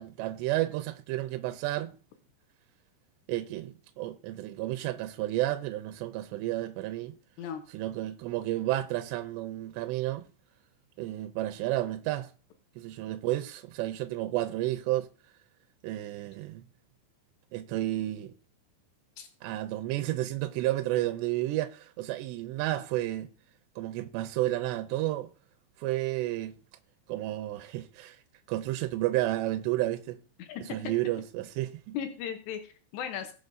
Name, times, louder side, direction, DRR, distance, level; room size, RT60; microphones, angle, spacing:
voice 1, 0.0-1.9 3.3-7.1 7.7-10.2 11.0-12.3 12.8-15.1 15.8-16.6 17.5-18.3 19.4-23.3 23.8-25.3 25.8-26.6 27.1-28.2 28.5-30.2 30.7-32.0, right 15 dB, 85° right, 2.8 m, -31 dB
voice 2, 31.9-33.3, left 8 dB, 80° left, 3.2 m, -37 dB
20.0 x 7.0 x 2.7 m
omnidirectional pair, 4.9 m